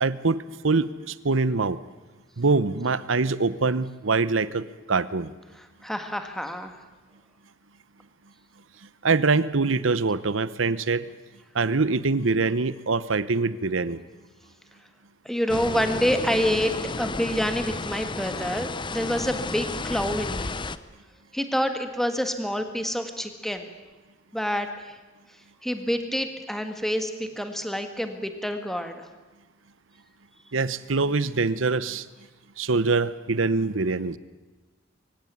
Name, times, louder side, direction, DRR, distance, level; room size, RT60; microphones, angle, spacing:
voice 1, 0.0-1.8 2.4-5.3 9.0-11.1 11.5-14.0 30.5-32.0 32.6-34.2, right 3 dB, 80° right, 16 dB, 0.9 m, -24 dB
voice 2, 5.6-6.8 15.2-20.5 21.3-23.7 24.3-25.0 25.6-29.1, equal, ahead, 6 dB, 1.7 m, -27 dB
sound 1, 15.5-20.8, left 3 dB, 25° left, 0.7 m, -32 dB
23.5 x 16.0 x 9.5 m, 1.2 s
head